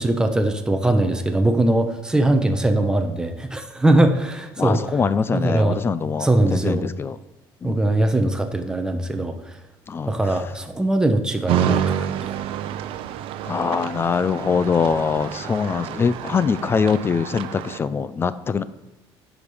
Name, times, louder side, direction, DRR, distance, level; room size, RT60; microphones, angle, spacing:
voice 1, 0.0-5.0 5.3-5.8 6.2-6.8 7.6-9.4 10.1-12.1, right 1 dB, 5° right, 6 dB, 0.8 m, -21 dB
voice 2, 4.6-7.2 7.6-7.8 9.9-10.1 13.5-18.6, left 5 dB, 25° left, 15 dB, 0.4 m, -23 dB
sound 1, 11.5-17.8, right 10 dB, 65° right, 0.6 m, -28 dB
10.0 x 5.0 x 5.5 m, 0.95 s
cardioid pair, 140°, 10 cm